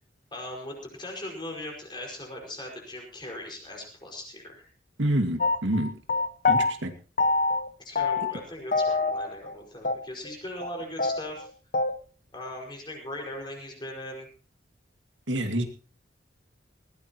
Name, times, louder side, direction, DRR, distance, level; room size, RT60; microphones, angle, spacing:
voice 1, 0.3-4.7 7.8-11.5 12.3-14.3, left 1 dB, 25° left, 1 dB, 5.4 m, -39 dB
voice 2, 5.0-5.9 6.5-6.9 15.3-15.7, right 1 dB, 90° right, 6 dB, 2.1 m, -27 dB
sound 1, 5.4-6.7 7.2-7.7 7.9-8.4 8.7-9.5 9.8-10.0 10.2-10.3 10.6-10.7 11.0-11.9, left 3 dB, 45° left, 1.0 m, -25 dB
20.0 x 16.5 x 3.0 m, 0.37 s
head